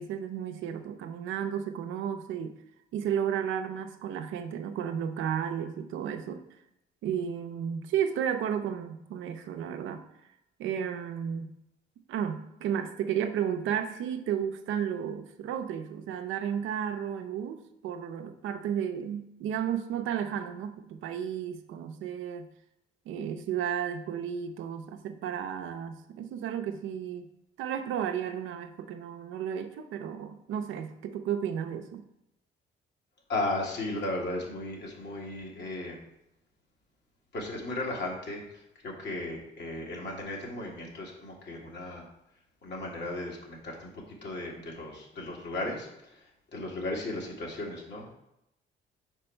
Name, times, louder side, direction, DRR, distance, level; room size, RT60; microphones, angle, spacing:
voice 1, 0.0-2.5 2.9-6.4 7.0-10.0 10.6-11.5 12.1-22.5 23.1-27.3 27.6-32.0, right 8 dB, 85° right, 7 dB, 0.6 m, -33 dB
voice 2, 33.3-36.0 37.3-38.4 38.8-42.1 42.6-43.9 44.2-45.9 46.5-48.1, left 2 dB, 60° left, -2 dB, 1.9 m, -35 dB
5.3 x 4.6 x 4.4 m, 0.83 s
cardioid pair, 90°, 20 cm